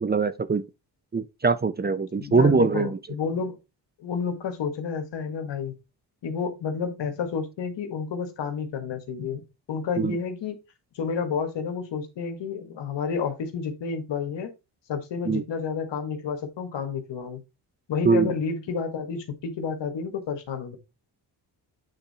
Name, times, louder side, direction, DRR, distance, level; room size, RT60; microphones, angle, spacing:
voice 1, 0.0-0.6 1.1-3.0 10.0-10.2 15.3-15.4 18.0-18.3, right 4 dB, 25° right, 0.5 m, -22 dB
voice 2, 2.1-3.6 4.0-5.7 6.2-9.4 9.7-10.6 11.0-14.5 14.9-17.4 17.9-20.8, left 5 dB, 80° left, 1.8 m, -30 dB
8.8 x 3.6 x 4.2 m
cardioid pair, 90°, 43 cm